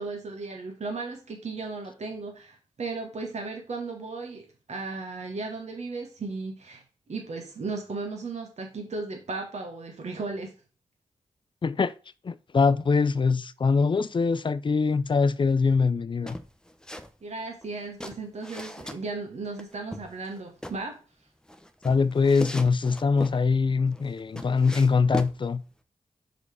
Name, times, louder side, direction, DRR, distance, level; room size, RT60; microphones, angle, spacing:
voice 1, 0.0-6.8 7.1-10.5 17.2-21.0, right 3 dB, 60° right, 1.2 m, -35 dB
voice 2, 11.6-11.9 12.2-16.4 21.8-25.6, left 4 dB, 40° left, 0.5 m, -23 dB
sound 1, 16.3-17.1 17.4-19.0 19.6-20.8 21.5-23.4 23.9-25.4, equal, 5° left, 0.8 m, -37 dB
5.2 x 3.9 x 4.8 m
cardioid pair, 45°, 13 cm